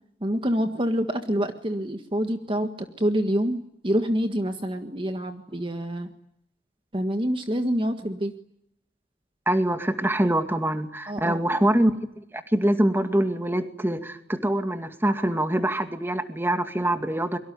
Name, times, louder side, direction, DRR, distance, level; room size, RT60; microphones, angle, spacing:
voice 1, 0.2-6.1 6.9-8.3 11.1-11.4, equal, 30° right, 6 dB, 1.7 m, -26 dB
voice 2, 9.5-17.4, right 1 dB, 15° right, 7 dB, 2.2 m, -24 dB
25.0 x 23.5 x 9.5 m, 0.75 s
head